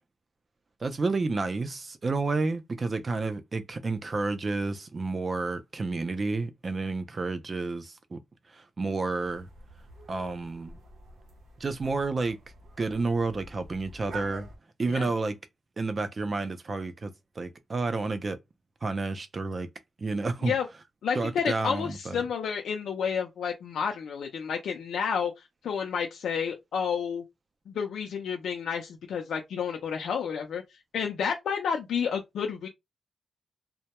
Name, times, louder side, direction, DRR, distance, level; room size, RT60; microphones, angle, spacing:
voice 1, 0.8-8.2 8.5-9.5 10.1-10.8 11.6-12.4 12.8-14.5 14.8-15.4 15.8-18.4 18.8-19.7 20.0-20.5 21.1-22.2, right 3 dB, 30° right, 0.4 m, -30 dB
sound 1, 9.2-14.6, right 3 dB, 85° right, 0.6 m, -47 dB
voice 2, 21.0-25.3 25.6-27.2 27.7-30.6 30.9-32.7, left 7 dB, 85° left, 0.4 m, -30 dB
2.2 x 2.0 x 2.9 m
wide cardioid pair, 170°, 0 cm